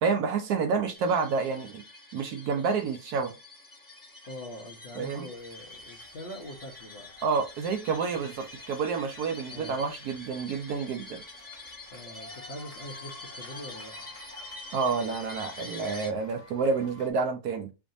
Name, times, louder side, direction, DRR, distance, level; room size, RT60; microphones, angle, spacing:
voice 1, 0.0-1.8 2.1-3.3 5.0-5.3 7.2-11.2 14.7-17.7, right 5 dB, 70° right, 1.0 m, -29 dB
sound 1, 0.9-16.1, left 2 dB, 10° left, 0.6 m, -46 dB
voice 2, 4.2-7.1 8.1-8.3 9.5-9.8 11.9-14.1, equal, 50° left, 0.7 m, -43 dB
sound 2, 5.4-17.1, left 2 dB, 25° left, 1.0 m, -53 dB
4.6 x 2.6 x 2.6 m
omnidirectional pair, 1.9 m